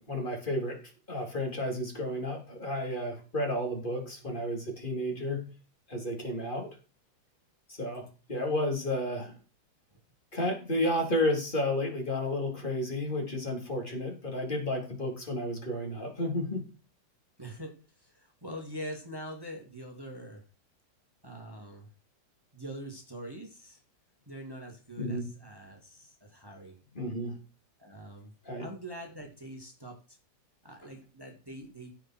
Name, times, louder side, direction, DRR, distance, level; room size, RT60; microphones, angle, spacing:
voice 1, 0.1-0.8 1.1-5.5 5.9-6.7 7.7-9.4 10.3-16.6 25.0-25.3 27.0-27.3 28.5-28.7, left 1 dB, 25° left, 1 dB, 3.9 m, -32 dB
voice 2, 17.4-20.4 21.2-21.9 22.5-23.8 24.3-26.8 27.8-28.3 28.6-30.2 30.6-31.9, equal, 10° right, 1 dB, 2.6 m, -44 dB
16.0 x 6.0 x 4.5 m, 0.34 s
omnidirectional pair, 1.9 m